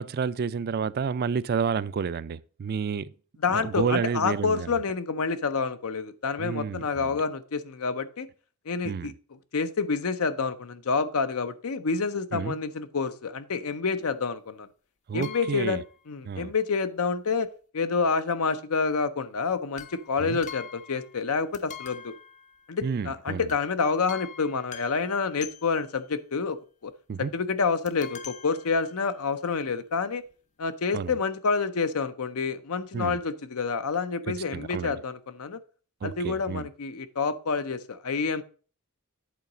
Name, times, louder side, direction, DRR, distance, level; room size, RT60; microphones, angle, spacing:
voice 1, 0.0-3.1 3.5-4.7 6.4-7.2 8.8-9.1 12.3-12.6 15.1-15.8 16.3-16.5 20.2-20.4 22.8-23.5 27.1-27.3 30.9-31.2 32.9-33.2 34.5-35.0 36.0-36.7, right 6 dB, 45° right, 0.3 m, -30 dB
voice 2, 3.4-8.3 8.7-9.1 9.5-14.7 15.1-17.5 17.7-22.1 22.7-26.6 26.8-26.9 27.2-30.2 30.6-35.6 36.0-38.4, left 4 dB, 75° left, 0.7 m, -28 dB
sound 1, 15.2-16.0 19.7-21.3 21.5-23.0 23.5-23.7 24.1-26.1 27.9-29.3 30.0-30.1 30.3-30.4, left 8 dB, 35° left, 0.6 m, -45 dB
8.2 x 4.0 x 6.0 m
head